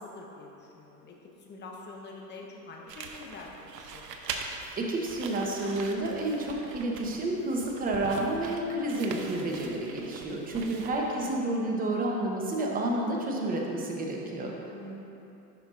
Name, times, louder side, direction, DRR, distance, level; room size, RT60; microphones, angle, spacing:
voice 1, 0.0-4.4 11.1-11.3 14.7-15.0, left 2 dB, 20° left, -1 dB, 0.9 m, -46 dB
sound 1, 2.9-11.2, right 5 dB, 85° right, 0.8 m, -42 dB
voice 2, 4.8-14.5, right 1 dB, 20° right, -1 dB, 0.9 m, -30 dB
10.5 x 5.4 x 2.5 m, 2.8 s
hypercardioid pair, 110°, 48 cm